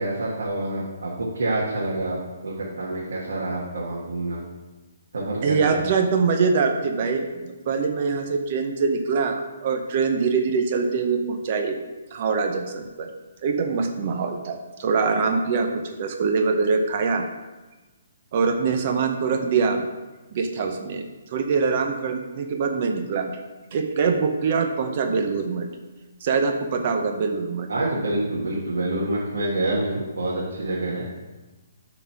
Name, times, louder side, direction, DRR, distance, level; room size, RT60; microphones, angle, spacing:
voice 1, 0.0-2.2 2.4-4.4 5.1-5.8 27.7-31.1, right 2 dB, 85° right, -5 dB, 1.8 m, -27 dB
voice 2, 5.4-11.8 12.1-13.1 13.4-17.2 18.3-19.9 20.3-21.0 21.3-23.3 23.7-25.7 26.2-27.7, right 5 dB, 35° right, 5 dB, 0.6 m, -24 dB
7.3 x 3.9 x 5.9 m, 1.2 s
hypercardioid pair, 170°, 0 cm